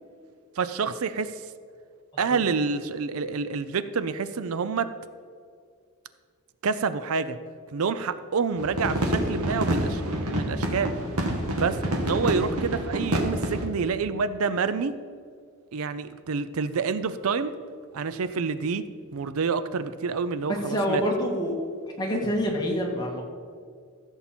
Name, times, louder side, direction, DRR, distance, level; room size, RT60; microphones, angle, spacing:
voice 1, 0.6-1.4 2.2-4.9 6.6-7.4 7.7-10.9 11.6-14.9 15.7-17.5 17.9-21.0, right 5 dB, 70° right, 13 dB, 0.5 m, -28 dB
sound 1, 8.6-13.7, right 1 dB, 90° right, 1.5 m, -27 dB
voice 2, 20.7-21.5 22.0-23.2, equal, 20° left, -1 dB, 1.8 m, -26 dB
15.0 x 7.2 x 4.4 m, 2.1 s
head